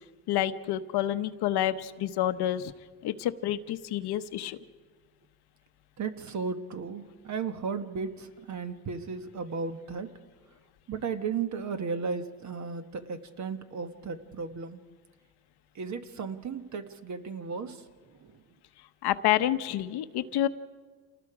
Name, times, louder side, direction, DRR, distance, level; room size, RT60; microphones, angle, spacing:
voice 1, 0.3-2.7 3.0-4.6 19.0-20.5, left 12 dB, 55° left, 11 dB, 0.9 m, -28 dB
voice 2, 6.0-10.1 10.9-14.8 15.7-17.8 18.2-18.4, right 5 dB, 40° right, 9 dB, 1.3 m, -35 dB
28.5 x 19.5 x 4.9 m, 1.5 s
cardioid pair, 130°, 45 cm